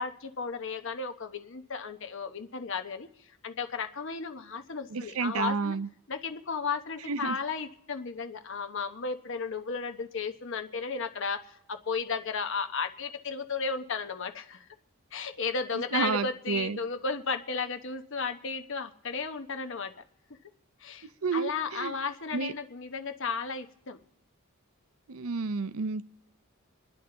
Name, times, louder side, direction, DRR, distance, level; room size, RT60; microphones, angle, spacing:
voice 1, 0.0-5.8 6.1-14.7 15.1-19.9 20.8-24.0, left 5 dB, 60° left, 7 dB, 0.9 m, -34 dB
voice 2, 4.9-5.9 7.1-7.4 15.7-16.8 21.0-21.9 22.3-22.5 25.1-26.0, right 4 dB, 80° right, 14 dB, 0.6 m, -31 dB
27.5 x 10.5 x 3.8 m, 0.79 s
head